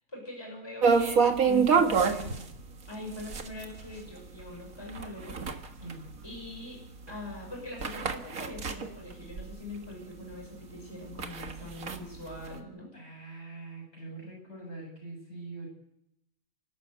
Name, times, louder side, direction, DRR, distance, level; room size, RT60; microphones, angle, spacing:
voice 1, 0.1-2.3 2.9-5.4 6.2-6.8 7.1-12.9, left 2 dB, 15° left, 0 dB, 6.5 m, -42 dB
sound 1, 0.8-9.9 10.3-10.4 10.8-12.6, right 5 dB, 70° right, 2.1 m, -28 dB
voice 2, 1.9-2.5 5.7-6.1 12.9-15.7, right 3 dB, 50° left, 0 dB, 8.0 m, -44 dB
29.0 x 13.0 x 8.1 m, 0.80 s
omnidirectional pair, 1.5 m